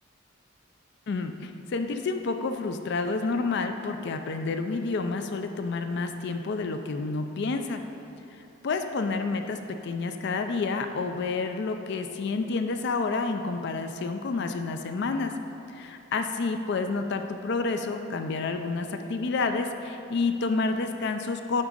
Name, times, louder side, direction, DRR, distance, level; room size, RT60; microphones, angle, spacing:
voice 1, 1.1-7.8 8.3-15.4 15.7-21.6, left 3 dB, 60° left, 7 dB, 0.4 m, -29 dB
9.7 x 3.7 x 5.2 m, 2.8 s
head